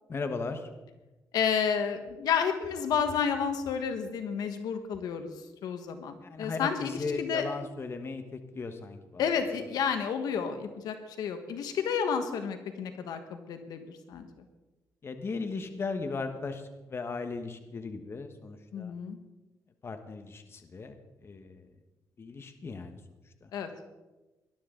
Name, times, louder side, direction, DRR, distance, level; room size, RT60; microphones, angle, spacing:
voice 1, 0.1-0.6 6.2-9.2 15.0-16.6 16.9-18.9 19.8-21.0 21.2-21.6 22.2-23.0 23.4-23.5, left 4 dB, 40° left, 7 dB, 1.3 m, -37 dB
voice 2, 1.3-5.3 5.6-7.4 9.2-13.8 14.1-14.3 18.7-19.2 23.5-23.7, left 7 dB, 80° left, 7 dB, 1.4 m, -31 dB
19.0 x 12.0 x 3.9 m, 1.1 s
cardioid pair, 90°, 7 cm